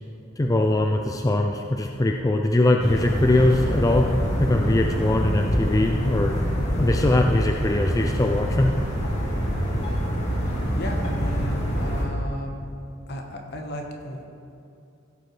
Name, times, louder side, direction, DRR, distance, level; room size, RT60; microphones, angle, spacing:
voice 1, 0.4-4.1 4.4-6.3 6.8-8.7, left 2 dB, 15° left, 2 dB, 0.4 m, -21 dB
sound 1, 2.8-12.0, equal, 35° left, 2.1 m, -25 dB
voice 2, 10.7-12.6 13.1-14.3, equal, 55° left, 2 dB, 1.2 m, -34 dB
15.5 x 8.0 x 3.3 m, 2.6 s
head